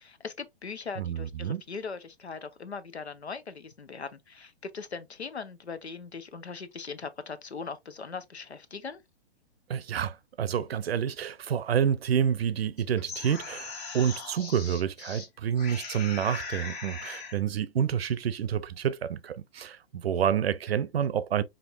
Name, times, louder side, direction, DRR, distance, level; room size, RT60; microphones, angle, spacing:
voice 1, 0.0-9.0, left 5 dB, 90° left, 0.7 m, -40 dB
voice 2, 1.0-1.6 9.7-21.4, right 8 dB, 70° right, 0.6 m, -28 dB
sound 1, 12.8-15.3 15.6-17.4, left 4 dB, 40° left, 1.4 m, -39 dB
5.1 x 2.7 x 2.5 m
figure-of-eight pair, 120°, 32 cm